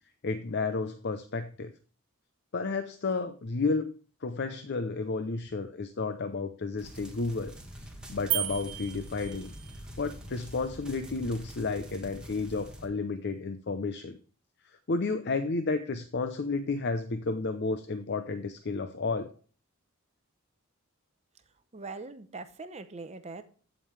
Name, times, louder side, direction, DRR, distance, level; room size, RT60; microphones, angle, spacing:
voice 1, 0.2-1.7 2.5-3.9 4.2-7.5 8.1-9.5 10.0-14.2 14.9-19.3, left 3 dB, 50° left, 0.6 m, -32 dB
sound 1, 6.8-12.9, equal, 5° right, 1.6 m, -45 dB
sound 2, 8.3-9.8, right 18 dB, 80° right, 0.6 m, -34 dB
voice 2, 21.7-23.4, right 3 dB, 30° right, 0.8 m, -41 dB
15.0 x 5.2 x 3.2 m
head